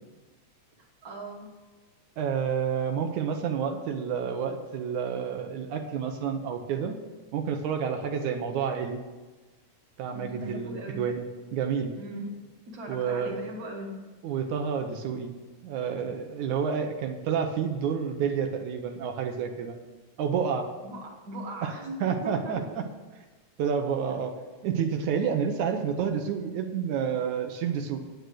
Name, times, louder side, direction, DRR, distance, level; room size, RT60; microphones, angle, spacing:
voice 1, 1.0-1.5 10.1-11.0 12.0-12.3 12.7-14.0 20.8-22.6, right 1 dB, 30° right, -1 dB, 2.2 m, -39 dB
voice 2, 2.2-6.9 7.3-9.0 10.0-11.2 11.5-12.0 12.9-13.4 14.2-15.3 15.6-19.8 20.2-20.7 21.6-22.8 23.6-24.3 24.6-28.0, right 7 dB, 80° right, 4 dB, 2.4 m, -29 dB
9.6 x 9.3 x 6.4 m, 1.3 s
omnidirectional pair, 3.4 m